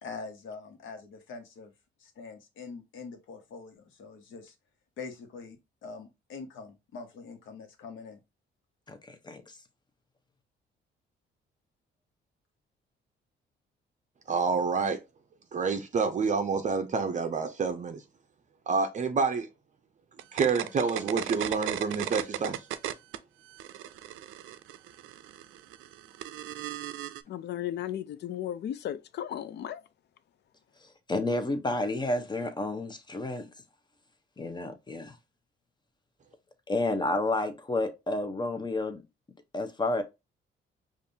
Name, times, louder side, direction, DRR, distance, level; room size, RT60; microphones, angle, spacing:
voice 1, 0.0-1.7 2.0-4.5 5.0-8.2, left 4 dB, 75° left, 1.1 m, -44 dB
voice 2, 8.9-9.4 31.1-33.5 34.4-35.2 36.7-39.0 39.5-40.0, left 2 dB, 20° left, 0.8 m, -30 dB
voice 3, 14.3-15.0 15.5-18.0 18.7-19.5 20.3-22.6, right 5 dB, 40° right, 0.5 m, -28 dB
sound 1, 20.2-23.2 23.5-27.2, right 12 dB, 85° right, 0.4 m, -36 dB
voice 4, 27.3-29.8, left 11 dB, 60° left, 0.4 m, -35 dB
5.2 x 2.5 x 2.7 m
cardioid pair, 90°, 20 cm